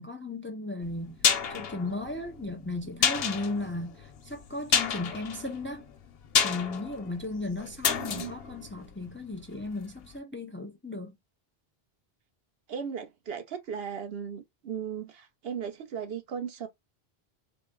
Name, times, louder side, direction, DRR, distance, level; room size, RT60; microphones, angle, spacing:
voice 1, 0.0-5.9 6.4-11.1, left 2 dB, 15° left, 0.5 m, -36 dB
sound 1, 0.8-9.7 10.0-10.1, left 7 dB, 70° left, 0.9 m, -30 dB
voice 2, 7.9-8.3 12.7-16.7, right 7 dB, 70° right, 1.0 m, -37 dB
4.1 x 2.0 x 3.7 m
omnidirectional pair, 1.1 m